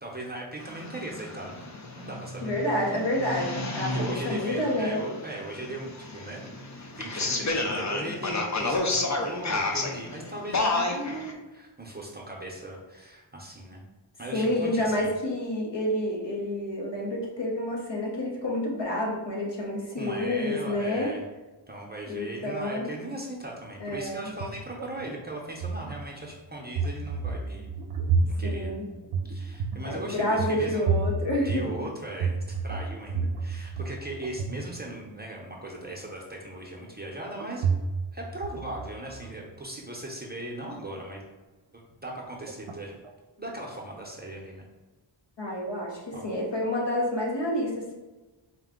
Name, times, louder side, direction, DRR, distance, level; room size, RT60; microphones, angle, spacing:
voice 1, 0.0-2.5 3.9-13.8 14.2-15.1 20.0-21.2 21.7-27.7 28.4-28.7 29.2-31.0 31.4-32.4 32.6-37.6 38.1-41.2 41.7-42.9 43.4-44.7 46.1-46.3, right 1 dB, 20° right, -2 dB, 0.8 m, -38 dB
sound 1, 0.6-11.3, left 2 dB, 35° left, 0.6 m, -31 dB
voice 2, 2.4-5.0 14.3-21.1 22.1-22.9 23.8-24.3 28.4-28.8 29.8-31.7 45.4-47.9, left 1 dB, 60° left, -3 dB, 1.1 m, -29 dB
sound 2, 23.9-25.1 25.5-26.4 26.7-34.0 34.2-34.7 37.4-38.1 38.4-39.4 42.5-42.8 43.0-43.1, right 4 dB, 85° right, 0.6 m, -30 dB
4.3 x 2.3 x 3.7 m, 1.2 s
wide cardioid pair, 60°, 48 cm